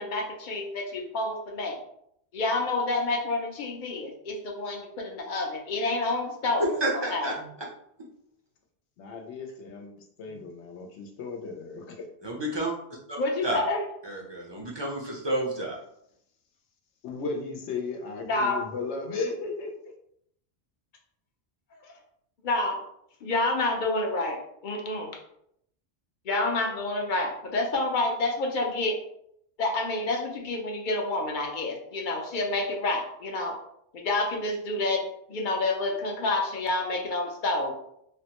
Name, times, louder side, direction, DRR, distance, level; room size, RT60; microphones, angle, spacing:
voice 1, 0.0-1.8 2.3-6.6 7.1-7.3 13.2-13.9 18.3-18.6 21.7-21.9 22.4-22.8 23.2-25.1 26.2-29.0 29.6-33.6 33.9-35.0 35.3-37.7, left 2 dB, 55° left, 1 dB, 0.7 m, -28 dB
voice 2, 6.6-7.3 8.0-8.1 12.2-12.7 13.1-13.2 13.4-13.6 14.0-15.8, right 1 dB, 35° right, -3 dB, 0.4 m, -30 dB
voice 3, 9.0-12.1 17.0-19.7, left 4 dB, 85° left, 3 dB, 0.9 m, -35 dB
3.4 x 2.1 x 2.8 m, 0.73 s
omnidirectional pair, 1.1 m